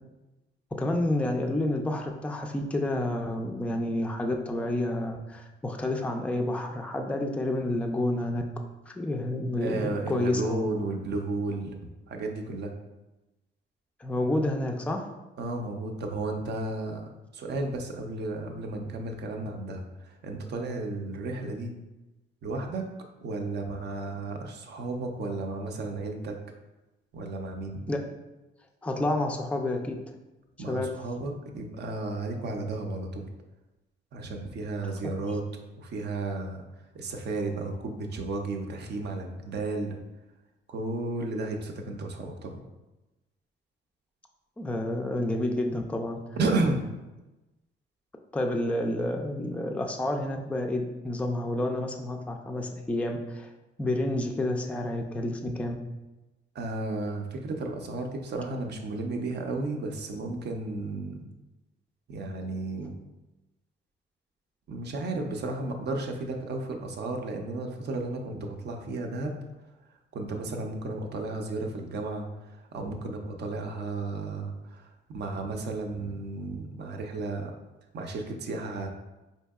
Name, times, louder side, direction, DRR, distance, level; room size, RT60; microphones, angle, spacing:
voice 1, 0.8-8.4 8.9-10.7 14.0-15.1 27.9-28.0 28.8-29.9 30.6-30.9 35.0-35.2 44.6-46.2 48.3-53.5 53.8-55.8, left 1 dB, 5° left, 3 dB, 0.3 m, -29 dB
voice 2, 9.6-12.7 15.4-21.7 22.4-22.9 23.2-26.4 27.1-27.8 30.6-33.3 34.1-35.4 35.8-36.6 36.9-40.0 40.7-42.6 46.4-46.9 56.5-61.2 62.1-62.9 64.7-69.4 70.1-77.5 77.9-78.9, right 2 dB, 60° right, 3 dB, 0.5 m, -33 dB
4.4 x 2.7 x 2.3 m, 1.1 s
cardioid pair, 90°, 20 cm